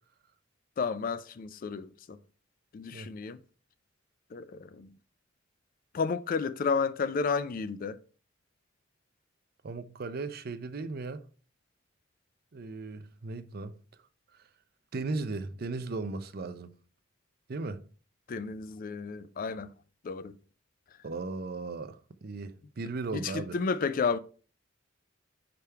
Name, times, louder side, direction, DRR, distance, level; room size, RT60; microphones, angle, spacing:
voice 1, 0.8-2.2 2.7-3.4 4.3-4.9 5.9-8.0 18.3-19.7 20.0-20.3 23.1-24.2, left 5 dB, 45° left, 0.4 m, -32 dB
voice 2, 9.6-11.2 12.5-13.8 14.3-14.4 14.9-16.8 17.5-17.8 21.0-23.6, right 3 dB, 50° right, 0.5 m, -37 dB
4.9 x 3.5 x 5.5 m
head